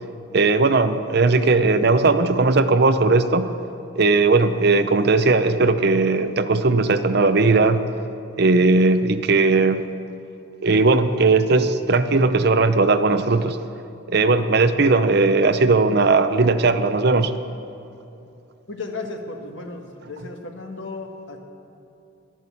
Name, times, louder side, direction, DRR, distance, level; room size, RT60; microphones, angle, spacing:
voice 1, 0.3-3.5 4.0-7.8 8.4-9.8 10.6-13.6 14.1-17.3, right 3 dB, 50° right, 10 dB, 0.6 m, -18 dB
voice 2, 18.7-21.4, left 3 dB, 60° left, 2 dB, 1.6 m, -34 dB
12.0 x 11.0 x 8.4 m, 2.8 s
head